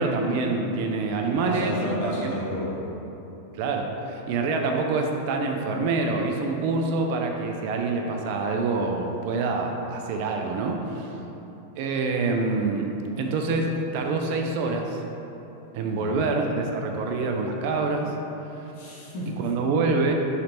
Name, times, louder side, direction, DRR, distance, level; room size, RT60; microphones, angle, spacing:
voice 1, 0.0-2.3 3.6-11.1 11.8-15.0 15.7-18.1 19.4-20.1, right 3 dB, 45° right, 2 dB, 0.4 m, -26 dB
voice 2, 1.2-2.8 15.8-16.3 18.7-19.5, equal, 50° left, -7 dB, 1.1 m, -32 dB
3.7 x 3.2 x 3.0 m, 3.0 s
figure-of-eight pair, 90°, 0 cm